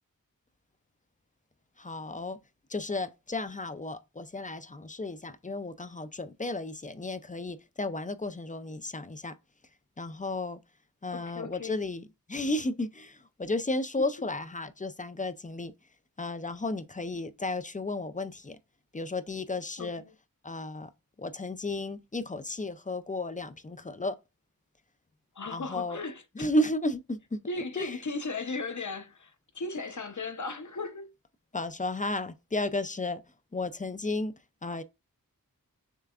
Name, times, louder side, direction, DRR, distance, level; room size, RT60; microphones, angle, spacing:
voice 1, 1.8-2.4 2.7-9.4 10.0-10.6 11.0-15.7 16.2-18.6 18.9-20.0 20.4-20.9 21.2-24.2 25.5-26.0 26.4-27.4 27.8-28.0 31.5-33.2 33.5-34.3 34.6-34.8, left 2 dB, 25° left, 0.4 m, -33 dB
voice 2, 11.1-11.8 19.8-20.1 25.3-26.2 27.5-31.1, left 3 dB, 55° left, 0.8 m, -36 dB
6.6 x 3.3 x 2.4 m
wide cardioid pair, 55°, 35 cm